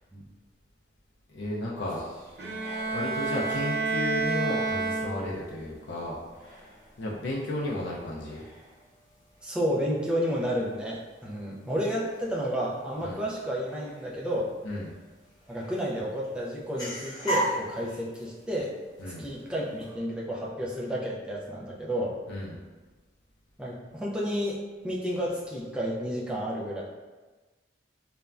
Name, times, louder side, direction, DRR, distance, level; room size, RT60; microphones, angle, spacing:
voice 1, 1.3-2.0 2.9-6.2 6.5-6.6 7.0-8.4 13.0-13.2 14.6-14.9 19.0-19.2 22.3-22.6, left 1 dB, 70° left, -5 dB, 0.4 m, -33 dB
sound 1, 1.8-19.9, equal, 20° left, 0.7 m, -41 dB
Bowed string instrument, 2.4-5.6, right 3 dB, 70° right, 0.6 m, -30 dB
voice 2, 9.4-14.5 15.5-18.7 19.2-22.2 23.6-24.6 24.8-26.8, equal, 5° right, -5 dB, 0.3 m, -31 dB
3.2 x 2.1 x 2.4 m, 1.3 s
head